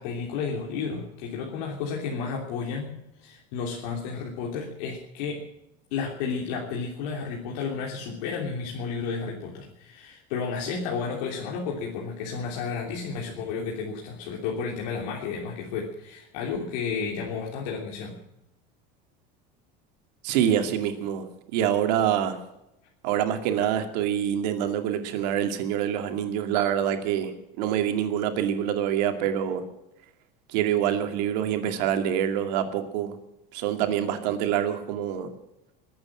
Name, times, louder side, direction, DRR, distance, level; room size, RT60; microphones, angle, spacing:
voice 1, 0.0-5.4 5.9-18.2, left 5 dB, 80° left, -1 dB, 3.1 m, -32 dB
voice 2, 20.2-22.4 23.0-29.6 30.5-33.2 33.5-35.3, right 10 dB, 85° right, 6 dB, 2.4 m, -26 dB
21.5 x 8.8 x 7.5 m, 0.87 s
cardioid pair, 160°, 21 cm